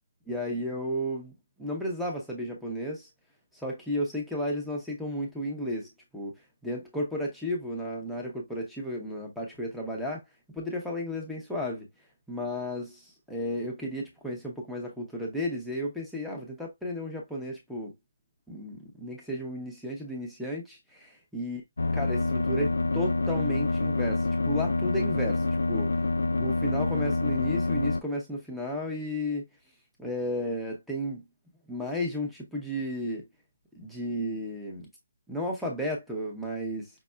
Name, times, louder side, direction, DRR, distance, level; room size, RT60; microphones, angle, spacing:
voice 1, 0.3-1.3 1.6-3.1 3.5-6.3 6.6-10.2 10.5-11.9 12.3-17.9 18.5-21.6 22.0-25.9 26.4-29.4 30.0-31.2 31.7-33.3 33.8-34.9 35.3-36.9, left 1 dB, ahead, 0.7 m, -33 dB
sound 1, 21.8-28.0, left 3 dB, 90° left, 0.3 m, -27 dB
5.3 x 2.0 x 2.2 m
hypercardioid pair, 170°, 0 cm